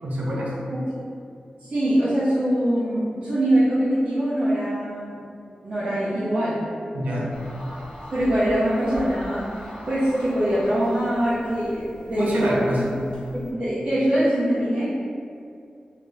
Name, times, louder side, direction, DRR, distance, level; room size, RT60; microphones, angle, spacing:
voice 1, 0.0-0.5 6.9-7.3 12.2-13.0, equal, 85° right, -4 dB, 0.6 m, -26 dB
voice 2, 1.7-5.2 5.6-6.6 8.1-12.6 13.3-14.9, right 1 dB, 55° right, -13 dB, 0.9 m, -23 dB
sound 1, 7.3-13.5, equal, 40° left, 0.7 m, -41 dB
2.9 x 2.5 x 3.2 m, 2.4 s
wide cardioid pair, 110°, 3 cm